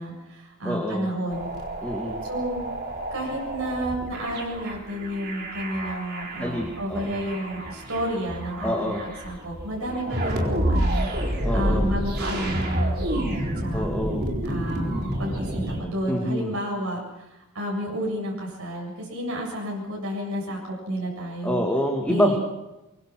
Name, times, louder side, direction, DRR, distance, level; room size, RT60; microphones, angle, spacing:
voice 1, 0.0-1.5 2.2-2.6 3.1-13.9 14.5-17.0 17.5-21.6 22.1-22.4, equal, 90° right, -2 dB, 7.8 m, -31 dB
voice 2, 0.6-1.1 1.8-2.2 6.4-7.2 8.6-9.0 11.4-11.9 13.7-14.3 16.1-16.5 21.4-22.3, equal, 5° left, 1 dB, 2.3 m, -26 dB
sound 1, 1.3-15.8, right 1 dB, 50° right, 4.1 m, -29 dB
23.5 x 23.5 x 6.3 m, 0.97 s
head